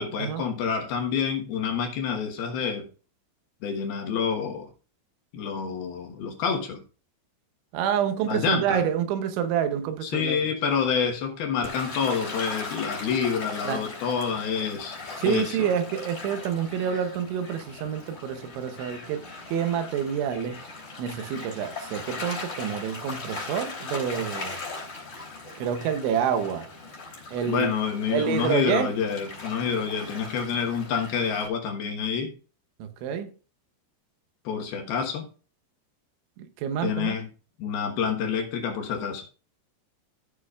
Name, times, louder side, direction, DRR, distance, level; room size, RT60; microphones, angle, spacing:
voice 1, 0.0-2.9 3.6-4.7 5.3-6.8 8.3-8.8 10.0-15.7 27.5-32.3 34.4-35.3 36.8-37.3 37.6-39.2, left 6 dB, 65° left, 2.7 m, -28 dB
voice 2, 7.7-10.4 13.6-13.8 15.2-20.6 21.0-24.6 25.6-26.7 27.3-27.7 28.1-28.9 32.8-33.3 36.4-37.2, right 8 dB, 80° right, 3.1 m, -28 dB
Gull seagull / Waves surf, 11.6-31.5, left 3 dB, 25° left, 3.3 m, -39 dB
14.5 x 7.5 x 2.4 m
omnidirectional pair, 5.6 m